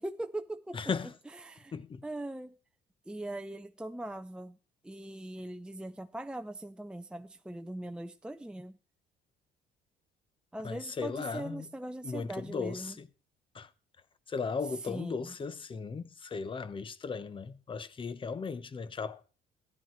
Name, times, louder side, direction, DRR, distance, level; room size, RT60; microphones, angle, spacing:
voice 1, 0.0-0.8 1.3-1.7 2.0-2.5 3.1-4.6 4.8-8.8 10.5-12.9 14.8-15.3, right 1 dB, 5° right, 0.7 m, -40 dB
voice 2, 0.7-1.1 1.7-2.0 10.6-11.7 12.0-13.1 13.5-13.7 14.3-19.2, left 5 dB, 30° left, 1.1 m, -37 dB
15.0 x 11.0 x 4.6 m
cardioid pair, 110°, 17 cm